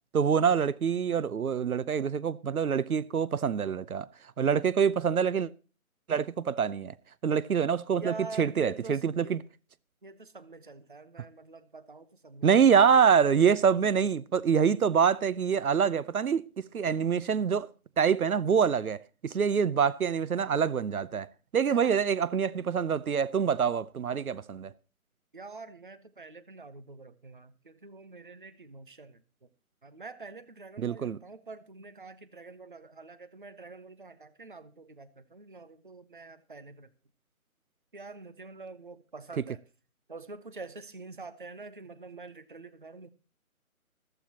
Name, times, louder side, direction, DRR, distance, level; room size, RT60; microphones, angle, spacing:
voice 1, 0.1-4.1 4.4-5.5 6.1-6.9 7.2-9.4 12.4-17.7 18.0-21.3 21.5-24.7 30.8-31.2, right 7 dB, 75° right, 0.8 m, -25 dB
voice 2, 7.9-9.4 10.0-12.5 12.8-12.9 21.7-21.9 25.3-29.5 29.8-36.9 37.9-39.6 40.1-43.1, right 3 dB, 35° right, 0.7 m, -46 dB
14.5 x 14.0 x 2.9 m
figure-of-eight pair, 175°, 43 cm